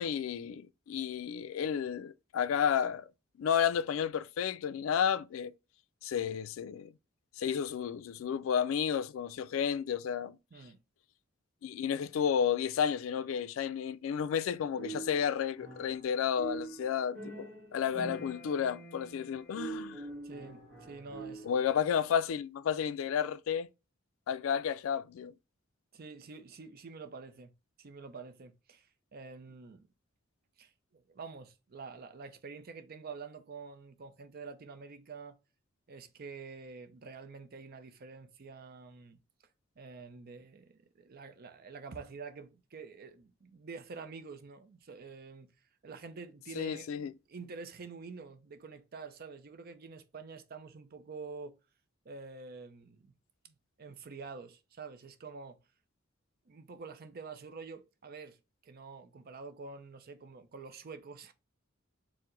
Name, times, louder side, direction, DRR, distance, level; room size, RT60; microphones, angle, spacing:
voice 1, 0.0-3.1 3.4-5.5 6.0-6.9 7.4-10.4 11.6-20.1 21.4-23.7 24.3-25.3 46.6-47.1, left 8 dB, 75° left, 0.3 m, -32 dB
voice 2, 10.5-10.8 20.2-21.5 25.9-27.5 27.8-29.9 30.6-35.4 35.9-39.2 39.8-45.5 45.8-46.9 47.3-51.6 52.1-53.1 53.4-55.6 56.5-61.3, right 4 dB, 50° right, 0.5 m, -47 dB
sound 1, 14.7-16.1 16.3-21.6, right 4 dB, 5° left, 1.4 m, -44 dB
4.5 x 2.1 x 3.8 m
head